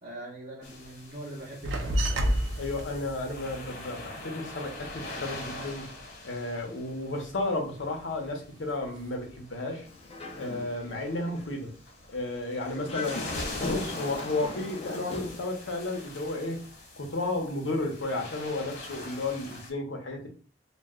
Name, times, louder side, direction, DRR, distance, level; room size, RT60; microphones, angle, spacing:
voice 1, 0.0-2.3, right 1 dB, 45° right, -6 dB, 0.8 m, -42 dB
sound 1, 0.6-19.7, left 2 dB, 60° left, 1.1 m, -44 dB
sound 2, 1.6-6.6 6.9-8.3 8.5-9.4 9.7-11.1 11.5-12.2, equal, 90° right, 0.5 m, -33 dB
voice 2, 2.6-5.9 6.2-9.8 10.4-11.7 12.1-16.6 17.0-20.3, left 2 dB, 80° left, 2 dB, 0.8 m, -33 dB
Dog, 9.9-11.0 11.4-11.5 12.7-15.4, left 3 dB, 30° left, 0.4 m, -38 dB
2.3 x 2.1 x 3.5 m, 0.41 s
head